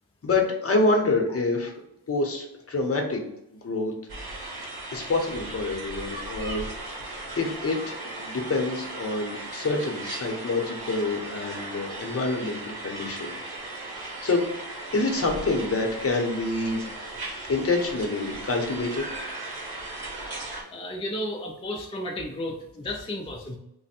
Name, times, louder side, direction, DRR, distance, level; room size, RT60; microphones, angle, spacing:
voice 1, 0.2-1.7 2.1-3.2 3.5-3.9 4.9-7.0 7.4-13.4 14.0-14.4 14.9-16.8 17.5-19.2, left 3 dB, 35° left, 2 dB, 0.8 m, -27 dB
sound 1, 4.1-20.6, right 2 dB, 70° right, 1.2 m, -37 dB
voice 2, 20.7-23.6, left 1 dB, 15° left, 0 dB, 0.3 m, -33 dB
3.3 x 2.1 x 4.2 m, 0.83 s
wide cardioid pair, 110°, 39 cm